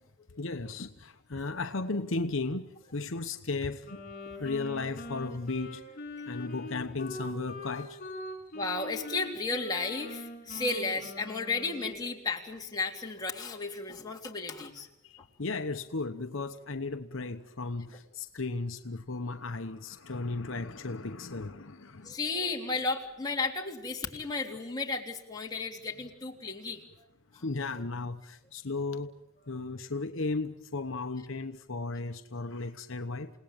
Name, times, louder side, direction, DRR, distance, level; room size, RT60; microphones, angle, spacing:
voice 1, 0.4-4.0 4.4-5.8 6.3-8.3 15.0-22.2 27.4-29.1 29.5-33.3, left 3 dB, 65° left, 1.0 m, -35 dB
Wind instrument woodwind instrument, 3.8-12.0, left 2 dB, 40° left, 7.8 m, -43 dB
voice 2, 8.5-14.9 22.0-26.8 27.3-27.4, left 3 dB, 20° left, 3.2 m, -34 dB
29.0 x 18.5 x 9.0 m
head